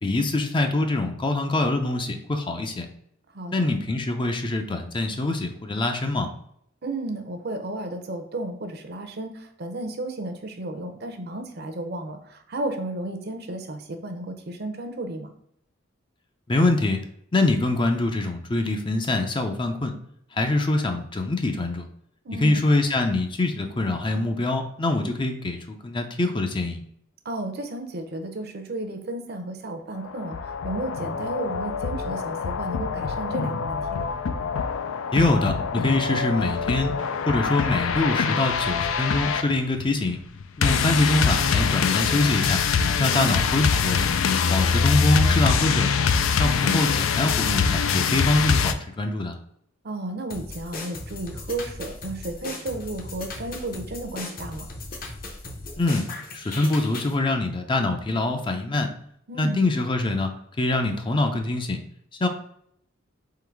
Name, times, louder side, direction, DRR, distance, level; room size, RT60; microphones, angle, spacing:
voice 1, 0.0-2.9 3.5-6.3 16.5-17.0 17.3-19.9 20.3-21.9 22.4-26.8 35.1-36.9 37.3-40.2 40.6-42.6 43.0-44.1 44.5-45.9 46.4-49.4 55.8-56.0 56.3-58.9 59.4-60.3 60.6-61.8 62.2-62.3, left 2 dB, 25° left, 6 dB, 0.5 m, -24 dB
voice 2, 3.3-3.8 6.8-15.3 22.2-22.6 27.2-34.1 43.1-43.4 44.6-44.9 49.8-54.7 59.3-59.6, right 2 dB, 55° right, 6 dB, 0.7 m, -33 dB
sound 1, 30.0-48.7, left 6 dB, 90° left, 0.4 m, -24 dB
sound 2, 50.3-57.1, left 2 dB, 45° left, 0.8 m, -37 dB
3.8 x 3.0 x 4.5 m, 0.70 s
head